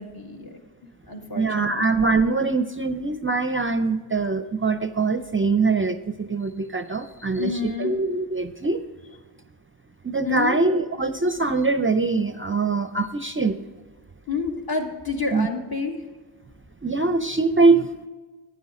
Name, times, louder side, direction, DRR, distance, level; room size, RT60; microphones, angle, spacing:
voice 1, 0.0-1.8 7.3-7.9 10.2-10.6 14.3-16.0, left 4 dB, 45° left, 1 dB, 1.9 m, -29 dB
voice 2, 1.4-8.8 10.0-13.6 15.3-15.5 16.8-17.9, right 3 dB, 25° right, 9 dB, 0.5 m, -23 dB
11.5 x 9.2 x 3.7 m, 1.3 s
cardioid pair, 60°, 49 cm